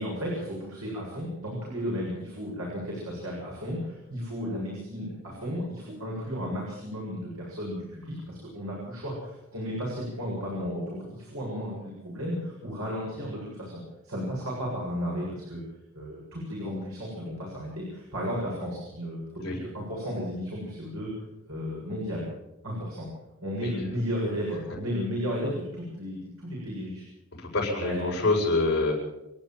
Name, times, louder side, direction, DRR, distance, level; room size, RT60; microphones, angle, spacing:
voice 1, 0.0-15.6 15.9-21.1 21.4-22.3 22.6-23.1 23.4-27.0 27.8-28.1, equal, 80° right, -4 dB, 7.6 m, -34 dB
voice 2, 27.4-28.9, left 3 dB, 50° left, -2 dB, 7.7 m, -26 dB
29.5 x 12.0 x 7.6 m, 0.93 s
head